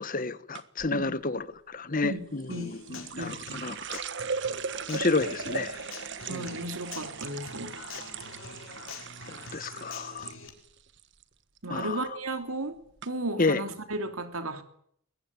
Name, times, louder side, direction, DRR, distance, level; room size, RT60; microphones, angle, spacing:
voice 1, 0.0-4.0 4.9-5.8 6.3-6.5 9.3-10.3 11.7-12.0 13.4-13.6, left 3 dB, 40° left, 1.3 m, -30 dB
sound 1, 0.5-0.9 2.4-10.4 10.6-11.2 11.6-11.9 12.6-12.7 13.0-13.1, right 5 dB, 55° right, 1.5 m, -38 dB
voice 2, 2.0-3.6 6.3-7.8 11.6-14.6, right 2 dB, 80° right, 3.0 m, -35 dB
Human voice / Acoustic guitar, 2.5-10.5, left 4 dB, 65° left, 5.4 m, -45 dB
22.0 x 19.5 x 9.7 m
head